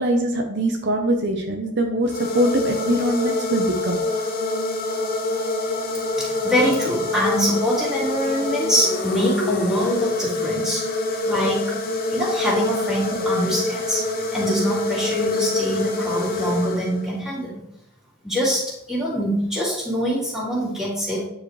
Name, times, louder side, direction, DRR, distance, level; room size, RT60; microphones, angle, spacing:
voice 1, 0.0-4.0, right 1 dB, 55° right, 2 dB, 0.8 m, -22 dB
sound 1, 2.0-17.3, left 2 dB, 45° left, 0.8 m, -25 dB
voice 2, 6.2-10.9 11.2-11.8 12.1-14.1 14.3-17.6 18.2-21.3, equal, 5° right, -7 dB, 2.7 m, -24 dB
9.8 x 4.8 x 3.3 m, 0.79 s
head